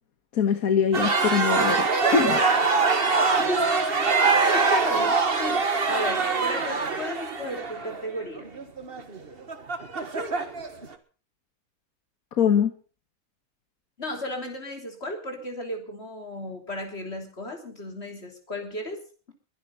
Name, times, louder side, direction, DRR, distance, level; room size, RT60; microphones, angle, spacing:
voice 1, 0.3-1.9 2.1-2.4 12.4-12.7, left 7 dB, 75° left, 8 dB, 1.8 m, -22 dB
sound 1, 0.9-10.9, right 4 dB, 40° right, 1.7 m, -23 dB
voice 2, 4.4-8.5 14.0-19.0, left 1 dB, 45° left, 4 dB, 3.6 m, -34 dB
22.5 x 10.0 x 5.7 m, 0.40 s
omnidirectional pair, 1.5 m